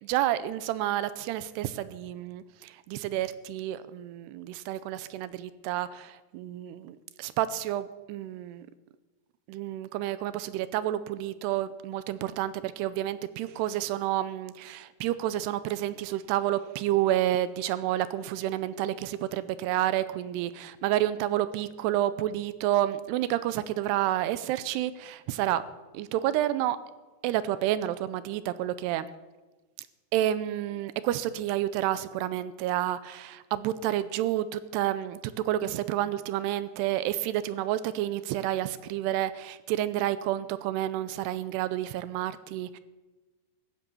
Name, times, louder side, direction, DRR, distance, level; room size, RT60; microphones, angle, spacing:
voice 1, 0.0-8.7 9.5-25.6 25.9-26.8 27.2-29.1 29.8-29.9 30.1-42.8, right 13 dB, 80° right, 15 dB, 2.6 m, -30 dB
15.5 x 9.9 x 7.0 m, 1.2 s
omnidirectional pair, 5.0 m